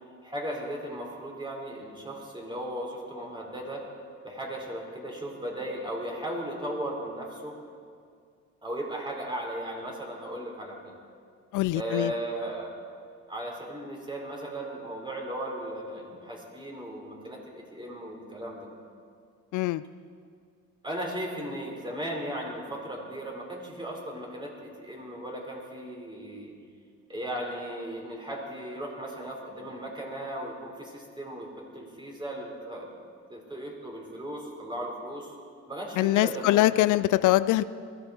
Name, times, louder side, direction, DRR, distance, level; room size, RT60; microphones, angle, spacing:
voice 1, 0.2-3.8 4.2-7.6 8.6-10.9 11.7-12.7 13.3-18.7 20.8-26.5 27.1-32.9 33.3-35.3 35.7-36.9, right 1 dB, 15° right, -1 dB, 4.4 m, -36 dB
voice 2, 11.5-12.1 19.5-19.8 36.0-37.6, left 16 dB, 80° left, 16 dB, 0.5 m, -23 dB
21.5 x 14.5 x 4.5 m, 2.2 s
cardioid pair, 90°, 30 cm